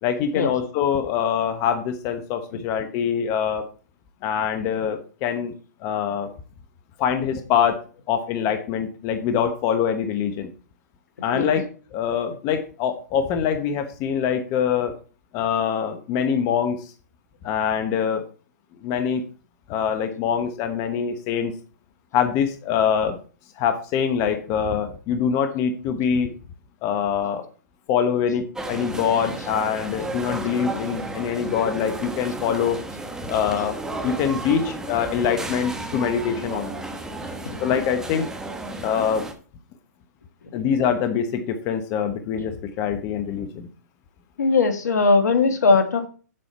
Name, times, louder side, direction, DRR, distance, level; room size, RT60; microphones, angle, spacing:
voice 1, 0.0-3.6 4.2-5.5 5.8-6.3 7.0-7.8 8.1-10.5 11.2-11.6 11.9-14.9 15.3-16.9 17.4-18.2 18.8-19.2 19.7-21.5 22.1-23.2 23.6-26.3 26.8-27.5 27.9-32.8 33.3-33.8 34.0-36.8 37.6-38.3 38.8-39.2 40.5-43.7, left 7 dB, 35° left, 7 dB, 1.1 m, -24 dB
sound 1, 28.6-39.3, right 2 dB, 5° right, 1.2 m, -33 dB
voice 2, 44.4-46.1, left 4 dB, 70° left, 7 dB, 1.7 m, -19 dB
8.4 x 7.7 x 4.3 m, 0.38 s
hypercardioid pair, 125°, 9 cm